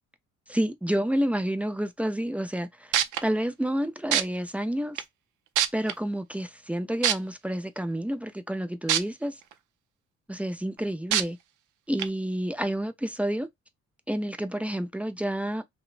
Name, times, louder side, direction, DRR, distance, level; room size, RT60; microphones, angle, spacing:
voice 1, 0.5-3.0 3.2-5.0 5.7-9.4 10.3-11.4 11.9-13.5 14.1-15.6, right 1 dB, 5° right, 0.3 m, -29 dB
sound 1, 2.6-2.7 2.9-3.2 4.1-4.2 5.0-5.1 5.6-5.9 7.0-7.1 8.9-9.0 9.5-9.6 11.1-11.2 12.0-12.1, right 11 dB, 80° right, 0.5 m, -22 dB
2.9 x 2.2 x 2.3 m
cardioid pair, 90°, 30 cm